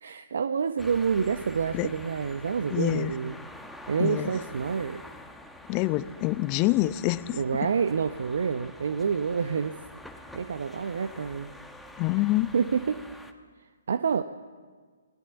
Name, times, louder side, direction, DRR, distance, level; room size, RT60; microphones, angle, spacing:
voice 1, 0.0-3.3 3.9-5.0 7.3-9.8 10.3-11.5 12.5-13.0 13.9-14.2, right 6 dB, 60° right, 10 dB, 0.9 m, -28 dB
sound 1, 0.8-13.3, left 1 dB, ahead, 1.6 m, -46 dB
voice 2, 2.7-3.1 4.0-4.3 5.7-7.7 12.0-12.5, left 18 dB, 30° left, 16 dB, 0.8 m, -26 dB
29.5 x 20.5 x 7.1 m, 1.5 s
figure-of-eight pair, 130°, 0 cm